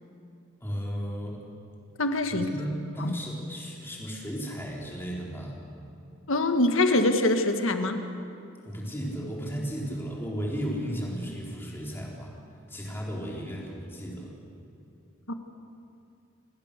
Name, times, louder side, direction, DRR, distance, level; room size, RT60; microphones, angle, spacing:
voice 1, 0.6-1.4 2.3-5.6 8.6-12.4 12.7-14.4, equal, 10° left, -3 dB, 3.7 m, -34 dB
voice 2, 2.0-2.5 3.0-3.1 6.3-8.0 15.3-15.4, left 2 dB, 70° left, 6 dB, 1.6 m, -24 dB
27.5 x 19.0 x 6.7 m, 2.6 s
head